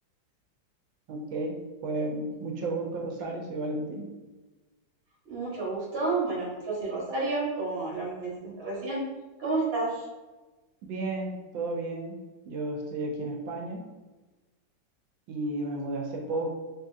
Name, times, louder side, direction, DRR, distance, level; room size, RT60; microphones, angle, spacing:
voice 1, 1.1-4.1 10.8-12.2 12.5-13.9 15.3-16.5, right 2 dB, 85° right, 1 dB, 1.3 m, -33 dB
voice 2, 5.3-9.0 9.4-10.1, right 3 dB, 35° right, -7 dB, 1.2 m, -30 dB
3.7 x 2.7 x 2.4 m, 1.2 s
omnidirectional pair, 2.0 m